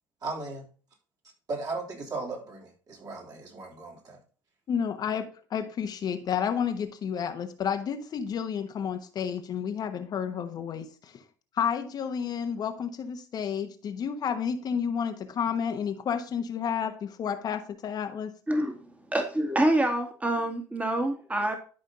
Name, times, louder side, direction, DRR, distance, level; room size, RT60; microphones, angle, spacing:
voice 1, 0.2-0.6 1.5-4.2, right 3 dB, 40° right, 0 dB, 3.5 m, -36 dB
voice 2, 4.7-5.2 5.5-11.2 11.5-18.3, left 7 dB, 45° left, 6 dB, 1.2 m, -31 dB
voice 3, 18.5-18.8 19.1-21.6, right 1 dB, 15° right, 5 dB, 1.9 m, -26 dB
12.0 x 5.2 x 3.8 m, 0.39 s
hypercardioid pair, 60°, 9 cm